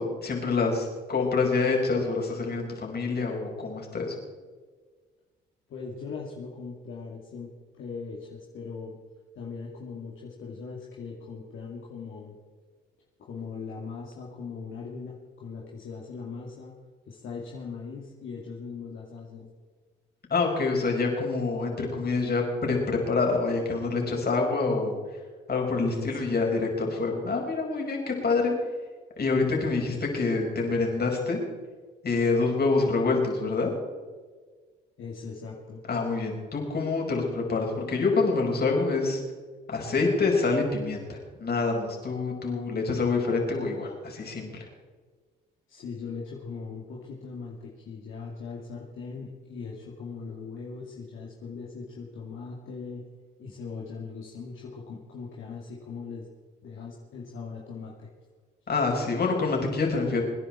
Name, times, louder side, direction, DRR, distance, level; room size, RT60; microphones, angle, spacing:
voice 1, 0.0-4.1 20.3-25.0 25.5-28.5 29.2-31.4 32.0-33.7 35.9-39.2 39.7-44.7 58.7-60.2, left 3 dB, 50° left, 0 dB, 5.3 m, -26 dB
voice 2, 5.7-9.0 9.4-12.4 13.2-16.7 17.1-19.5 25.9-26.3 35.0-35.8 45.7-53.1 53.4-56.3 56.6-58.1, left 4 dB, 70° left, -3 dB, 2.5 m, -40 dB
26.0 x 10.5 x 4.4 m, 1.5 s
supercardioid pair, 60°, 21 cm